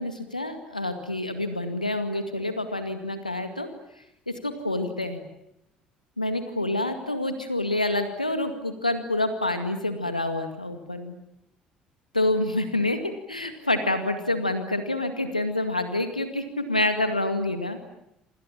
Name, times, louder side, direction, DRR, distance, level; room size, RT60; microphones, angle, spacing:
voice 1, 0.0-3.7 4.0-4.1 4.4-5.2 6.2-11.1 12.1-17.9, left 2 dB, 90° left, 8 dB, 2.1 m, -27 dB
28.5 x 26.0 x 7.4 m, 0.80 s
figure-of-eight pair, 55°, 4 cm